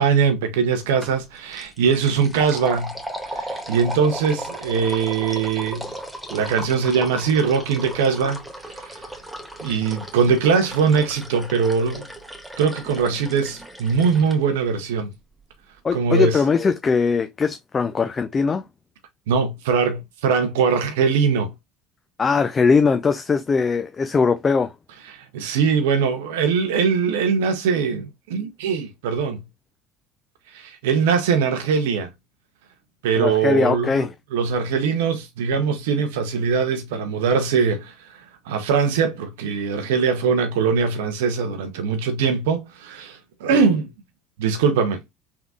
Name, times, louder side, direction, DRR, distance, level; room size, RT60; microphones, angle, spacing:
voice 1, 0.0-2.9 3.3-5.9 6.3-8.4 8.7-9.0 9.6-12.1 12.6-15.1 15.9-16.4 19.3-21.5 25.1-29.4 30.5-32.1 33.0-43.9 44.4-45.0, right 6 dB, 80° right, 0.6 m, -21 dB
sound 1, 1.0-1.2 1.5-14.4, right 1 dB, 5° right, 1.2 m, -36 dB
voice 2, 15.8-18.6 22.2-24.7 33.2-34.1, left 5 dB, 30° left, 0.5 m, -20 dB
3.6 x 3.6 x 2.3 m
hypercardioid pair, 75°, 0 cm